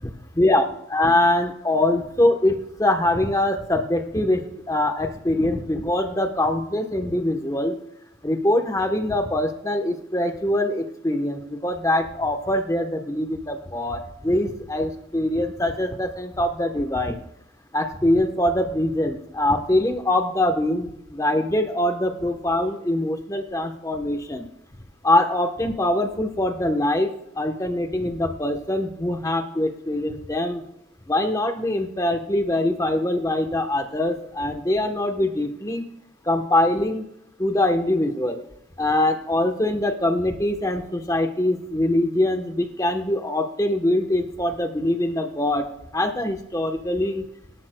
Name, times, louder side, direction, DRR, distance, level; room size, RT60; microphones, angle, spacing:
voice 1, 0.0-7.8 8.2-17.2 17.7-24.5 25.0-30.6 31.1-35.8 36.3-37.0 37.4-38.4 38.8-45.6 45.9-47.2, left 1 dB, 15° left, 5 dB, 1.0 m, -23 dB
24.0 x 12.5 x 2.2 m, 0.81 s
head